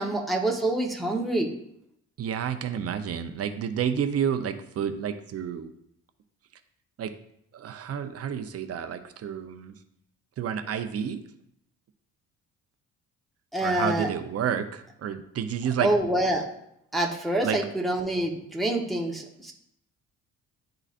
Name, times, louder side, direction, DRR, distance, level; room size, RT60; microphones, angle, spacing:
voice 1, 0.0-1.5 13.5-14.1 15.8-16.4 16.9-19.5, right 1 dB, ahead, -2 dB, 1.0 m, -26 dB
voice 2, 2.2-5.7 7.0-7.1 7.5-9.7 10.4-11.2 13.6-16.1 17.4-17.6, right 8 dB, 50° right, 8 dB, 0.6 m, -30 dB
11.0 x 3.9 x 2.5 m, 0.75 s
cardioid pair, 90°, 30 cm